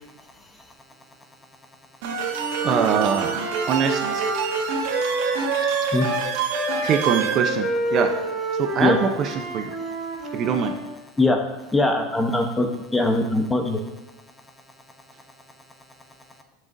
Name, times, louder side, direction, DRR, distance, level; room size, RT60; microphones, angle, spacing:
sound 1, 2.0-7.4, right 6 dB, 65° right, 1.7 m, -27 dB
Wind instrument woodwind instrument, 2.3-6.2 6.5-10.8, right 2 dB, 20° right, 3.0 m, -28 dB
voice 1, 2.6-3.4 3.7-4.3 6.8-8.1 8.6-9.7 10.3-10.7, right 7 dB, 35° right, 5 dB, 0.7 m, -23 dB
voice 2, 11.7-13.8, left 2 dB, 10° left, 4 dB, 0.9 m, -21 dB
17.5 x 6.3 x 2.6 m, 1.0 s
supercardioid pair, 160°, 0 cm